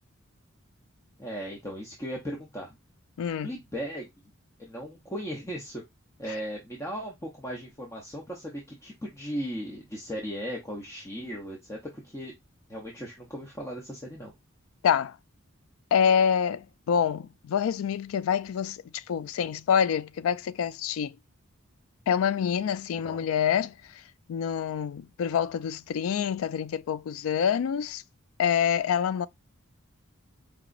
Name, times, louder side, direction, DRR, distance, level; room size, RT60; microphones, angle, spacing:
voice 1, 1.2-2.7 3.4-4.1 4.6-5.8 6.2-11.8 12.0-12.3 12.7-14.3 23.1-23.3, equal, 15° left, 0.7 m, -37 dB
voice 2, 3.2-3.5 14.8-15.2 15.9-21.2 22.1-23.7 24.3-28.0 28.4-29.3, left 8 dB, 80° left, 0.3 m, -26 dB
4.7 x 3.0 x 2.4 m
head